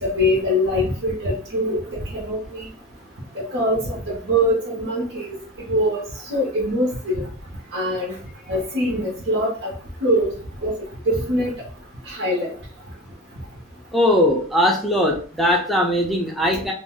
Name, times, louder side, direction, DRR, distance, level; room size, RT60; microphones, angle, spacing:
voice 1, 0.0-2.7 3.3-5.4 5.7-6.0 6.3-7.3 7.7-8.2 8.5-9.7 10.0-10.3 10.6-10.7 11.1-11.5 12.1-12.5, equal, 65° right, -3 dB, 0.8 m, -23 dB
voice 2, 13.9-16.7, left 1 dB, ahead, -2 dB, 0.4 m, -20 dB
2.5 x 2.0 x 3.6 m, 0.43 s
head